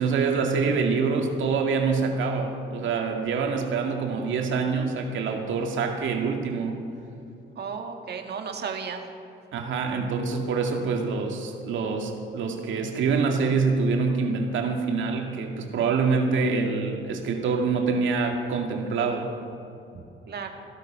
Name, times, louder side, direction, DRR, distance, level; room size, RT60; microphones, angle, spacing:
voice 1, 0.0-6.8 9.5-19.3, right 4 dB, 75° right, 2 dB, 2.3 m, -25 dB
voice 2, 7.6-9.0 19.9-20.5, right 6 dB, 55° right, 4 dB, 2.0 m, -34 dB
17.0 x 12.5 x 5.8 m, 2.7 s
cardioid pair, 90°, 20 cm